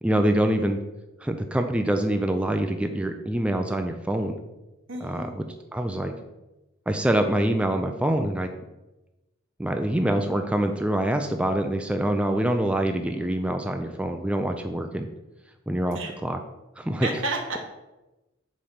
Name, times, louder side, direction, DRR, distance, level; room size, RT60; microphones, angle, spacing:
voice 1, 0.0-0.8 1.2-4.4 5.0-5.4 5.7-6.1 6.9-8.5 9.6-15.1 15.7-16.4 16.8-17.1, right 1 dB, 5° right, 5 dB, 0.4 m, -25 dB
voice 2, 4.9-5.3 15.9-16.2 17.0-17.6, right 2 dB, 70° right, 2 dB, 1.4 m, -31 dB
5.7 x 5.1 x 5.6 m, 1.0 s
head